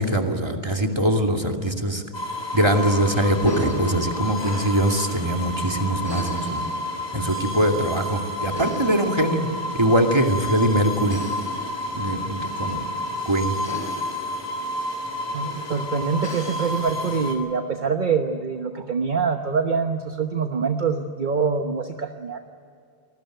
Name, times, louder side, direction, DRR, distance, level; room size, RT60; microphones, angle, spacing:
voice 1, 0.0-2.0 2.5-6.6 7.1-9.5 9.8-11.2 11.9-12.9 13.3-13.5, right 1 dB, 25° right, 2 dB, 2.6 m, -22 dB
sound 1, 2.1-17.4, left 1 dB, 25° left, 3.7 m, -30 dB
voice 2, 15.3-22.4, right 5 dB, 50° right, 5 dB, 1.2 m, -25 dB
27.0 x 20.0 x 9.2 m, 2.4 s
omnidirectional pair, 1.0 m